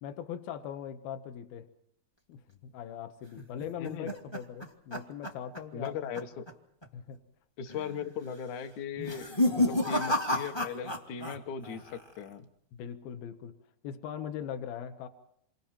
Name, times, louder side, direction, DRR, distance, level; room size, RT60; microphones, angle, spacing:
voice 1, 0.0-1.7 2.3-6.0 6.9-7.2 9.4-9.8 12.8-13.6 13.8-15.1, left 9 dB, 75° left, 8 dB, 2.8 m, -40 dB
sound 1, 3.4-5.9 6.1-6.5 6.8-6.9 7.7-8.1 8.9-11.4 11.6-12.2, left 1 dB, 40° left, 0.3 m, -31 dB
voice 2, 5.7-6.4 7.6-12.5, left 7 dB, 60° left, 8 dB, 2.3 m, -38 dB
28.5 x 24.5 x 4.4 m, 0.69 s
omnidirectional pair, 4.4 m